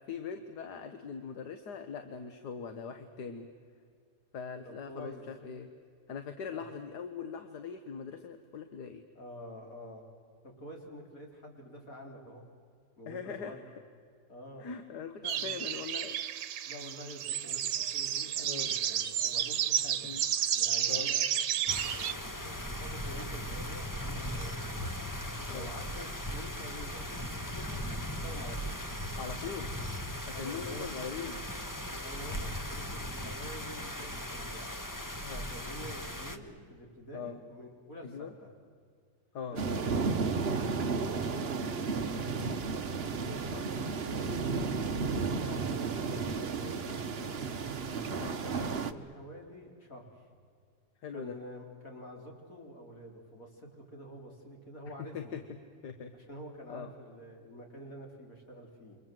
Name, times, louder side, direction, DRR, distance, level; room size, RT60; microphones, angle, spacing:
voice 1, 0.1-3.5 4.3-5.7 6.1-9.0 13.1-13.6 14.6-16.2 18.4-18.7 20.0-20.2 20.9-21.1 25.5-25.7 29.2-29.7 30.4-31.4 35.2-35.5 37.1-37.4 38.0-38.3 39.3-39.6 42.4-42.6 48.2-48.3 51.0-51.4 55.1-55.4 55.8-56.1 56.7-56.9, left 6 dB, 75° left, 8 dB, 1.9 m, -41 dB
voice 2, 4.6-5.2 6.5-6.6 9.1-10.0 10.4-12.5 13.0-13.7 14.3-14.7 15.2-15.8 16.6-20.1 20.6-21.2 21.6-24.9 25.5-28.8 30.3-30.9 31.9-34.7 35.5-38.5 39.4-40.2 40.4-41.8 43.0-47.5 48.0-50.3 51.1-55.4 56.1-59.0, equal, 55° left, 2 dB, 4.4 m, -48 dB
sound 1, 15.2-22.1, right 10 dB, 80° right, 1.5 m, -31 dB
sound 2, 21.7-36.4, equal, 10° left, 1.2 m, -38 dB
sound 3, 39.6-48.9, right 4 dB, 40° right, 1.1 m, -33 dB
28.0 x 25.0 x 7.7 m, 2.2 s
omnidirectional pair, 1.8 m